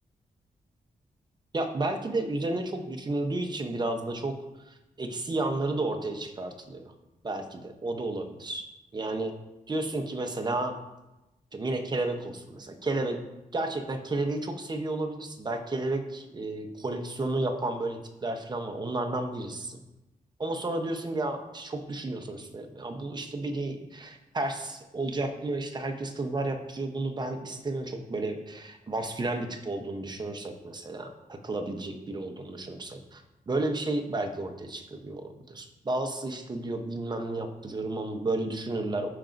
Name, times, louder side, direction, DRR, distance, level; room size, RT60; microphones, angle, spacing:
voice 1, 1.5-4.4 4.7-6.9 7.2-8.7 8.9-9.3 9.7-10.8 11.5-13.2 13.5-19.8 20.4-39.1, right 2 dB, 30° right, 5 dB, 0.8 m, -32 dB
14.5 x 5.0 x 2.6 m, 0.99 s
wide cardioid pair, 130°, 15 cm